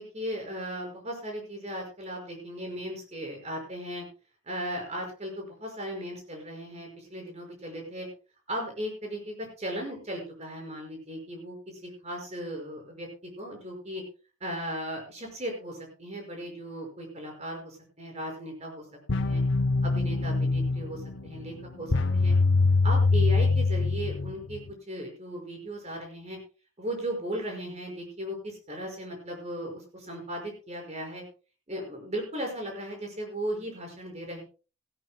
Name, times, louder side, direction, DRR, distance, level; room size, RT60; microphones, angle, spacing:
voice 1, 0.0-4.0 4.5-8.1 8.5-11.6 11.8-14.0 14.4-18.8 19.1-19.4 19.8-22.3 22.8-24.6 24.9-26.4 26.8-31.2 31.7-34.4, equal, 35° right, 2 dB, 5.5 m, -37 dB
sound 1, 19.1-24.7, left 3 dB, 60° left, 0.7 m, -24 dB
17.0 x 16.0 x 2.2 m, 0.34 s
head